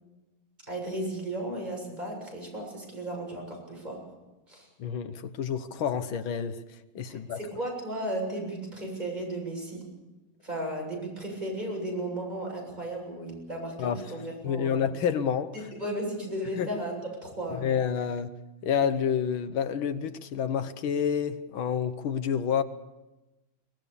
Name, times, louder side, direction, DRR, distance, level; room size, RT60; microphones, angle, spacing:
voice 1, 0.6-4.0 4.5-4.7 7.1-9.9 10.4-14.8 15.5-17.7, right 1 dB, 20° right, 7.4 m, -35 dB
voice 2, 4.8-6.6 7.0-7.4 13.8-14.0 14.4-15.5 16.6-16.8 17.5-18.3 18.6-22.6, left 7 dB, 75° left, 1.8 m, -29 dB
23.5 x 19.5 x 7.0 m
omnidirectional pair, 2.2 m